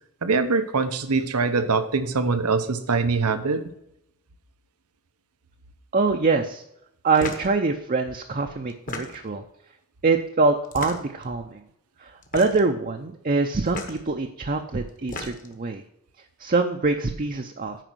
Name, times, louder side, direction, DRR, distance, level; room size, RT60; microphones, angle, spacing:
voice 1, 0.2-3.6, right 4 dB, 90° right, 10 dB, 0.9 m, -23 dB
voice 2, 5.9-6.6 7.0-9.4 10.0-11.6 12.0-15.8 16.4-17.8, right 3 dB, 40° right, 4 dB, 0.6 m, -24 dB
sound 1, 7.2-7.5 8.7-9.4 10.6-11.2 12.2-12.7 13.7-14.0 14.9-15.6, left 3 dB, 40° left, 1.1 m, -34 dB
9.1 x 5.4 x 6.2 m, 0.78 s
head